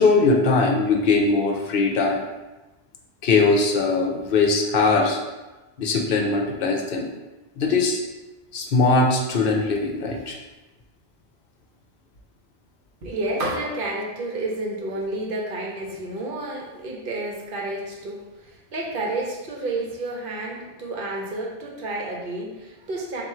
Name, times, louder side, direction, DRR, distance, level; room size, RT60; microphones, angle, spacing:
voice 1, 0.0-2.2 3.2-5.2 5.8-7.1 7.6-8.0 8.5-10.4, left 3 dB, 65° left, 1 dB, 0.8 m, -20 dB
voice 2, 13.0-23.2, right 2 dB, 60° right, -2 dB, 0.9 m, -30 dB
3.6 x 2.3 x 4.3 m, 1.1 s
omnidirectional pair, 1.0 m